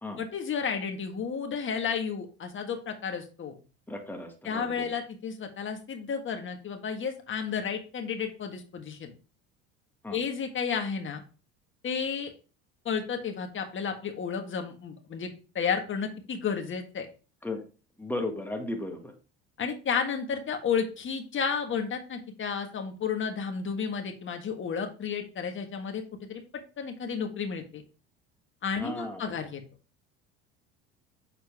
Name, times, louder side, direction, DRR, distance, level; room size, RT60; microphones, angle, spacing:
voice 1, 0.2-3.5 4.4-9.1 10.1-11.2 11.8-12.3 12.8-15.3 15.5-17.1 19.6-26.4 26.8-27.8 28.6-29.6, left 6 dB, 35° left, 4 dB, 1.6 m, -32 dB
voice 2, 3.9-4.9 10.0-10.2 17.4-17.6 18.0-19.1 28.8-29.2, left 2 dB, 5° left, 3 dB, 1.7 m, -35 dB
6.9 x 4.2 x 3.6 m, 0.35 s
hypercardioid pair, 85°, 32 cm